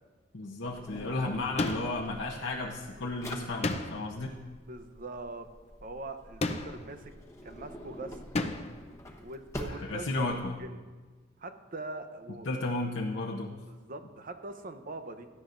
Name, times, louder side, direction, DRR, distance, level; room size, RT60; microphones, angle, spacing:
voice 1, 0.3-4.4 9.8-10.6 12.4-13.5, left 2 dB, 80° left, -3 dB, 0.9 m, -33 dB
Drawer open or close, 0.7-10.6, left 1 dB, 15° left, 1.2 m, -47 dB
sound 1, 1.6-2.1 3.6-4.2 6.4-7.0 8.3-8.8, left 2 dB, 35° left, 0.7 m, -32 dB
voice 2, 4.7-5.5 5.8-7.1 7.4-8.2 9.2-10.8 11.4-12.5 13.7-15.3, right 2 dB, 45° right, 7 dB, 0.8 m, -42 dB
17.0 x 13.0 x 2.6 m, 1.4 s
head